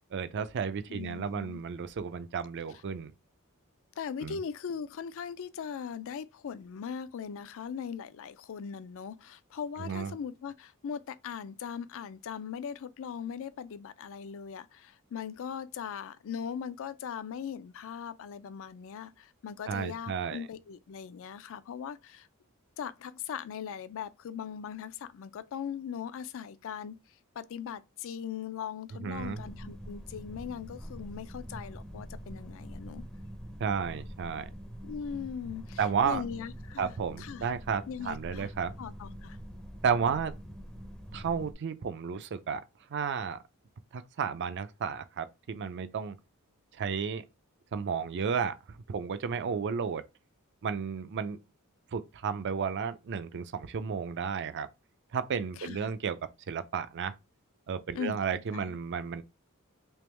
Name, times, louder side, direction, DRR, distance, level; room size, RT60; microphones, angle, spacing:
voice 1, 0.1-3.1 4.2-4.4 9.8-10.1 19.7-20.4 29.0-29.4 33.6-34.5 35.8-36.2 36.8-38.8 39.8-40.3 41.1-42.6 42.9-43.4 43.9-46.2 46.7-47.2 47.7-50.0 50.6-51.4 51.9-54.7 55.1-56.2 56.5-57.2 57.7-59.2, right 6 dB, 55° right, 0.4 m, -32 dB
voice 2, 0.9-1.6 4.0-22.3 22.8-27.0 27.4-33.0 34.8-37.5 37.9-38.5 38.8-39.4 55.6-55.9 57.9-58.8, left 7 dB, 65° left, 0.4 m, -40 dB
sound 1, 29.1-41.5, equal, 5° left, 0.5 m, -45 dB
3.4 x 2.9 x 3.1 m
head